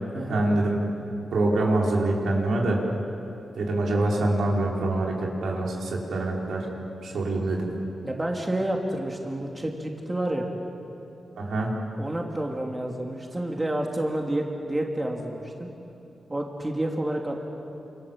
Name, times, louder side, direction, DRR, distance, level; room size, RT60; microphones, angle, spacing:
voice 1, 0.3-0.8 1.3-2.8 3.6-6.7 7.0-7.7 11.4-11.7, right 2 dB, 85° right, -2 dB, 5.1 m, -25 dB
voice 2, 8.0-10.5 12.0-15.7 16.3-17.4, right 1 dB, 15° right, 1 dB, 2.7 m, -29 dB
28.5 x 27.0 x 7.5 m, 2.9 s
wide cardioid pair, 120°, 0 cm